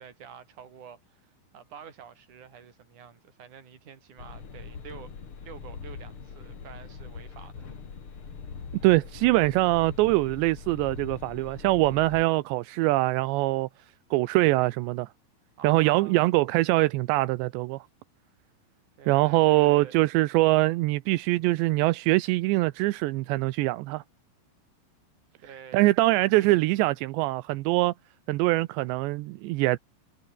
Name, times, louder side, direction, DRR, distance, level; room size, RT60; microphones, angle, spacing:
voice 1, 0.0-5.1 5.4-7.7 15.6-16.2 19.0-20.0 25.4-26.5, right 7 dB, 45° right, 4.2 m, -47 dB
sound 1, 4.2-12.2, left 5 dB, 35° left, 2.8 m, -42 dB
voice 2, 8.8-13.7 14.1-15.1 15.6-17.8 19.1-24.0 25.7-27.9 28.3-29.8, right 19 dB, 80° right, 2.7 m, -23 dB
omnidirectional pair, 5.7 m